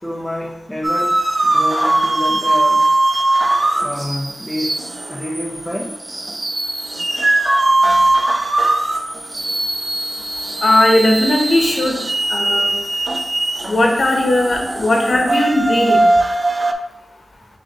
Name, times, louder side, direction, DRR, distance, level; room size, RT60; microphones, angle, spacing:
voice 1, 0.0-2.8 3.8-4.7 5.1-5.9, left 1 dB, 10° left, -1 dB, 0.6 m, -27 dB
sound 1, 0.8-16.7, right 2 dB, 40° right, 0.4 m, -19 dB
voice 2, 10.6-12.0 12.3-12.7 13.7-16.0, left 1 dB, 70° left, 1 dB, 0.9 m, -17 dB
6.7 x 2.7 x 2.8 m, 0.79 s
wide cardioid pair, 65°, 0 cm